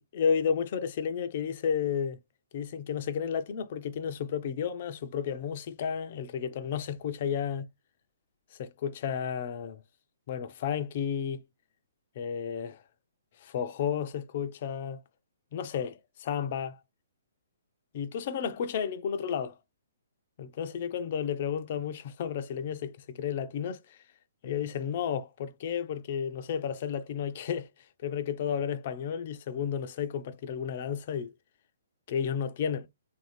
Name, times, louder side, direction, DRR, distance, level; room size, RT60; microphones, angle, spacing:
voice 1, 0.1-2.2 2.5-7.7 8.6-9.8 10.3-11.4 12.2-12.8 13.4-15.0 15.5-16.8 17.9-19.5 20.4-24.0 24.4-27.7 28.0-31.3 32.1-32.9, left 7 dB, 50° left, 0.6 m, -32 dB
3.4 x 2.7 x 3.2 m
hypercardioid pair, 130°, 0 cm